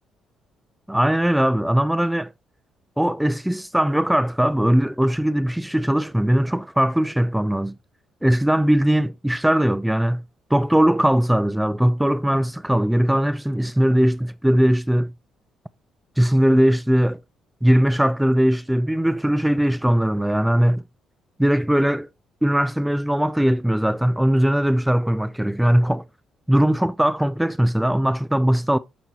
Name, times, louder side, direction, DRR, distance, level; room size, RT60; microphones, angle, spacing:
voice 1, 0.9-2.3 3.0-7.7 8.2-10.2 10.5-15.1 16.2-17.2 17.6-20.8 21.4-22.1 22.4-26.0 26.5-28.8, equal, 5° right, 0.3 m, -20 dB
8.8 x 4.2 x 2.9 m
supercardioid pair, 55°, 0 cm